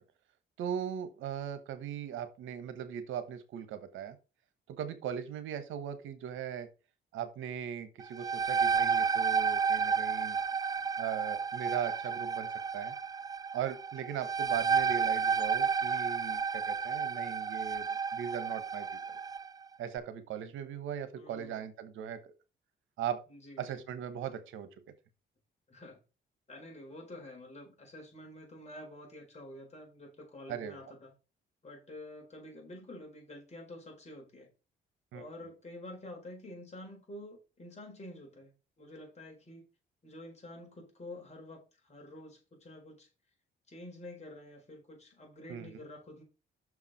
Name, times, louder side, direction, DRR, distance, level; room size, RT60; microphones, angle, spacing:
voice 1, 0.6-4.2 4.7-6.7 7.1-10.4 11.0-12.5 12.7-12.9 13.5-18.9 19.8-22.3 23.0-23.2 23.6-24.7 30.5-30.8 35.1-35.2 45.5-45.8, right 9 dB, 85° right, 1.1 m, -39 dB
sound 1, 8.0-19.5, right 6 dB, 20° right, 0.4 m, -31 dB
voice 2, 21.1-21.6 23.3-23.8 25.7-26.0 26.5-31.1 31.6-34.5 35.1-39.6 40.0-43.1 43.7-46.2, left 1 dB, 35° left, 4.6 m, -48 dB
6.3 x 4.8 x 5.6 m
cardioid pair, 90°, 20 cm